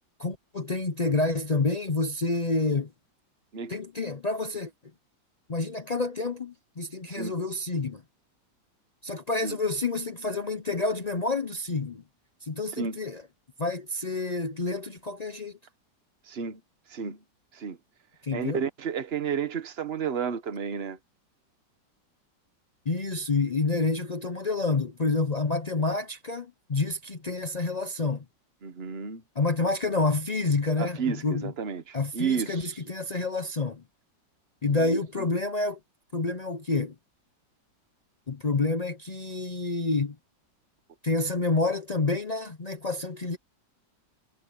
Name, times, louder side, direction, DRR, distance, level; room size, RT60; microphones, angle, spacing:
voice 1, 0.2-2.9 3.7-4.7 5.5-8.0 9.0-12.0 12.4-13.2 13.6-15.5 18.2-18.6 22.9-28.2 29.4-31.5 31.9-33.8 34.6-35.8 36.1-36.9 38.3-40.2 41.0-43.4, left 3 dB, 55° left, 0.4 m, -28 dB
voice 2, 16.3-16.6 16.9-17.2 17.5-17.8 18.3-21.0 28.6-29.2 30.8-32.8 34.6-35.3, right 6 dB, 35° right, 1.4 m, -32 dB
omnidirectional pair, 1.9 m